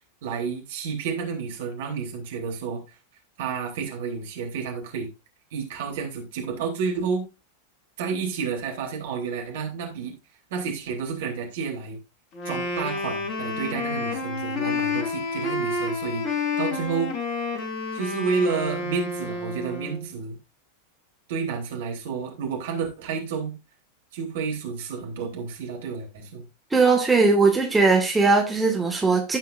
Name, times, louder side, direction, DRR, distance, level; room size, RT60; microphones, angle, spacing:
voice 1, 0.2-3.0 3.4-5.1 5.5-7.3 8.0-10.1 10.5-12.0 12.4-17.1 17.9-20.4 21.3-23.5 24.1-26.4, right 5 dB, 55° right, 1 dB, 3.5 m, -30 dB
Wind instrument woodwind instrument, 12.3-20.1, left 3 dB, 35° left, 2.4 m, -29 dB
voice 2, 26.7-29.4, right 3 dB, 10° right, 1 dB, 1.8 m, -19 dB
16.5 x 5.7 x 2.6 m, 0.27 s
figure-of-eight pair, 90°, 0 cm